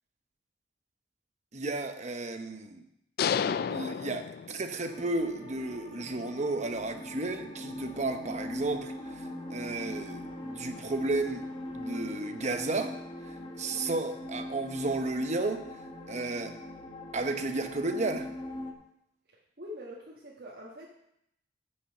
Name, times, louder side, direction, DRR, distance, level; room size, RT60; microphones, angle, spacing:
voice 1, 1.5-2.8 3.6-11.5 11.7-12.9 13.2-15.7 16.1-16.6 17.1-18.3, right 2 dB, 40° right, 7 dB, 0.9 m, -33 dB
sound 1, 3.2-5.0, left 7 dB, 60° left, 0.3 m, -31 dB
sound 2, 4.8-18.7, left 1 dB, 30° left, 1.2 m, -41 dB
voice 2, 19.6-20.9, left 1 dB, 60° right, -4 dB, 1.5 m, -44 dB
9.5 x 5.7 x 6.6 m, 0.77 s
head